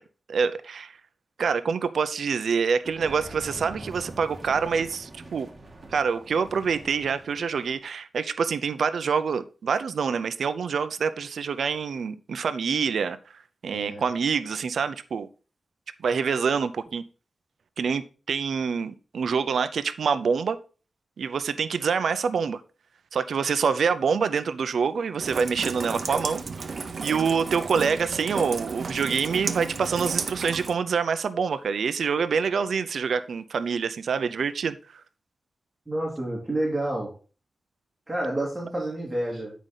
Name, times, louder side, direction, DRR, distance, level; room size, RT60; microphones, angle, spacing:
voice 1, 0.3-1.0 1.4-5.5 5.9-13.2 13.6-15.3 16.0-17.0 17.8-20.6 21.2-22.6 23.1-26.4 27.0-35.0, right 6 dB, 80° right, 12 dB, 0.5 m, -26 dB
sound 1, 2.8-7.8, right 2 dB, 30° right, 1.6 m, -44 dB
voice 2, 13.7-14.0 35.9-37.1 38.1-39.5, right 1 dB, 10° right, -4 dB, 2.6 m, -29 dB
Rain, 25.2-30.7, right 4 dB, 50° right, 0.8 m, -33 dB
9.1 x 5.1 x 3.9 m, 0.36 s
wide cardioid pair, 145°, 0 cm